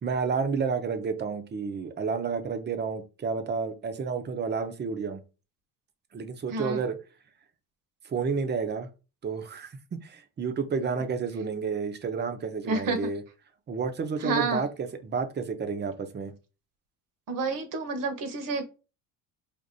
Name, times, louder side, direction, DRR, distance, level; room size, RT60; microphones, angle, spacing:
voice 1, 0.0-5.2 6.1-7.0 8.0-8.9 9.2-13.2 13.7-16.3, right 5 dB, 25° right, 0.7 m, -30 dB
voice 2, 6.5-6.8 12.7-13.1 14.2-14.7 17.3-18.6, right 3 dB, 55° right, 1.1 m, -29 dB
5.1 x 2.5 x 2.7 m
cardioid pair, 100°, 38 cm